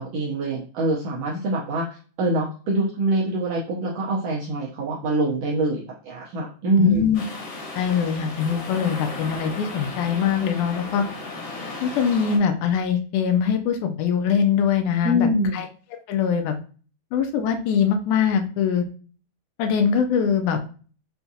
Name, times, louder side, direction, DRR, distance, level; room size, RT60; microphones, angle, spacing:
voice 1, 0.0-1.9 2.2-7.1 15.0-15.6, right 1 dB, 80° right, -4 dB, 1.4 m, -24 dB
voice 2, 6.8-7.2 7.8-11.1 11.8-15.3 15.5-15.7 16.1-16.6 17.1-18.9 19.6-20.6, left 7 dB, 80° left, 6 dB, 1.9 m, -22 dB
sound 1, 7.1-12.4, left 3 dB, 60° left, 1.6 m, -35 dB
5.7 x 2.3 x 2.6 m, 0.39 s
omnidirectional pair, 3.6 m